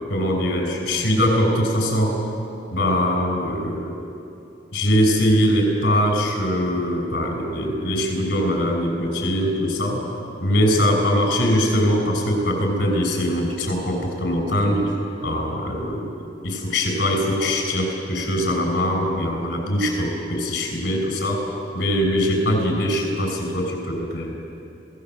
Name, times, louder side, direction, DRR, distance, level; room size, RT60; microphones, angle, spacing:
voice 1, 0.1-2.2 2.7-3.9 4.7-10.0 10.4-14.9 15.2-16.1 16.4-21.4 21.7-24.3, equal, 75° left, 1 dB, 6.3 m, -22 dB
26.5 x 18.5 x 7.9 m, 2.7 s
head